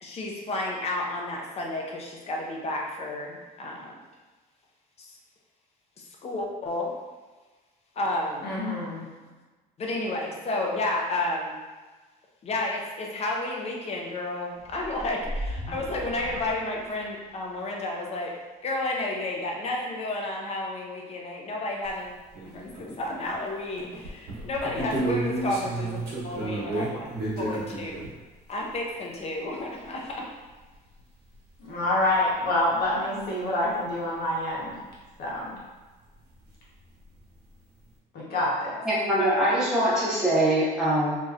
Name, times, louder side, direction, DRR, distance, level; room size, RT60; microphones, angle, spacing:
voice 1, 0.0-4.0 5.0-5.1 6.2-6.9 8.0-8.5 9.8-11.6 12.4-18.3 18.6-22.1 22.4-27.0 27.4-28.0 28.5-30.2, left 2 dB, 40° left, -1 dB, 0.6 m, -31 dB
voice 2, 8.4-9.1 31.6-34.8 35.2-35.5 38.1-38.8, left 1 dB, 65° left, -6 dB, 1.1 m, -27 dB
sound 1, 14.6-17.3, equal, 20° right, 0.6 m, -36 dB
sound 2, 21.8-21.9 22.3-23.4 23.8-28.1 30.7-30.8 31.0-31.1 32.1-32.2 32.8-32.9 36.5-36.6 36.8-37.2, right 2 dB, 75° right, 1.0 m, -32 dB
voice 3, 38.8-41.2, right 1 dB, 5° right, -10 dB, 1.4 m, -23 dB
3.0 x 2.6 x 2.4 m, 1.3 s
cardioid pair, 110°, 17 cm